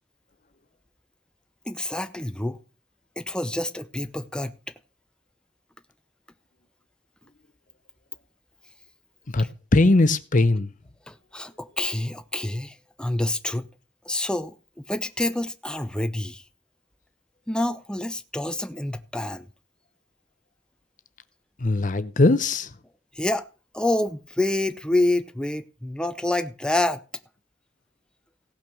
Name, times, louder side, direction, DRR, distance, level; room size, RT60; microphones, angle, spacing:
voice 1, 1.6-2.6 3.2-4.5 9.4-9.5 11.1-13.7 14.0-16.4 17.5-19.5 23.1-23.5 23.7-27.0, left 1 dB, 5° left, 0.7 m, -27 dB
voice 2, 9.3-10.7 21.6-22.7, left 2 dB, 45° left, 0.8 m, -20 dB
16.5 x 6.0 x 6.2 m
head